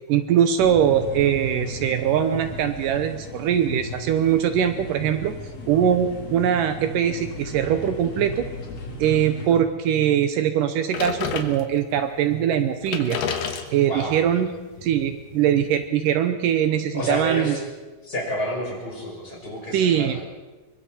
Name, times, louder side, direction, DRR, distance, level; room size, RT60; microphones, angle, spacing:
voice 1, 0.1-5.3 5.7-8.4 9.0-13.2 13.7-14.5 14.8-17.6 19.7-20.2, right 9 dB, 75° right, 9 dB, 2.4 m, -22 dB
sound 1, 0.6-9.6, left 1 dB, 45° left, 3.9 m, -36 dB
sound 2, 10.9-12.0 12.5-12.6 12.8-15.9, left 6 dB, 70° left, 3.0 m, -31 dB
voice 2, 16.9-17.6 18.0-20.2, left 1 dB, 25° left, -3 dB, 6.4 m, -29 dB
25.0 x 23.5 x 4.4 m, 1.3 s
omnidirectional pair, 4.0 m